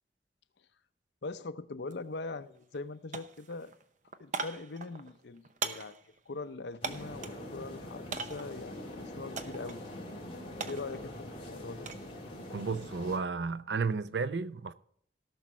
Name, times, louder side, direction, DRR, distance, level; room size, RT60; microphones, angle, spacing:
voice 1, 1.2-3.7 4.2-6.0 6.3-9.8 10.6-11.1 11.5-11.9, left 3 dB, 75° left, 0.7 m, -41 dB
sound 1, 1.9-2.0 2.4-2.9 3.1-7.4 8.1-8.6 9.4-9.8 10.1-12.1 12.4-12.9, right 4 dB, 45° right, 0.8 m, -40 dB
sound 2, 6.8-13.2, left 1 dB, 30° left, 2.6 m, -44 dB
voice 2, 12.5-14.7, right 4 dB, 75° right, 0.6 m, -33 dB
17.0 x 6.2 x 4.3 m
head